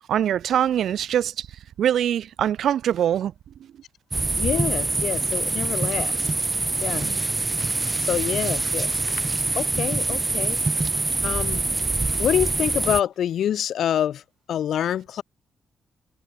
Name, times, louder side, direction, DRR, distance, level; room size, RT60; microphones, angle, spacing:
voice 1, 0.1-1.5 1.8-3.3 7.0-7.2, right 10 dB, 70° right, 0.7 m, -23 dB
sound 1, 4.1-13.0, right 3 dB, 15° right, 0.4 m, -25 dB
voice 2, 4.4-6.3 6.8-7.2 8.0-9.0 9.5-10.6 11.2-11.6 12.2-14.2 14.5-15.2, left 10 dB, 70° left, 6.6 m, -26 dB
wide cardioid pair, 170°, 0 cm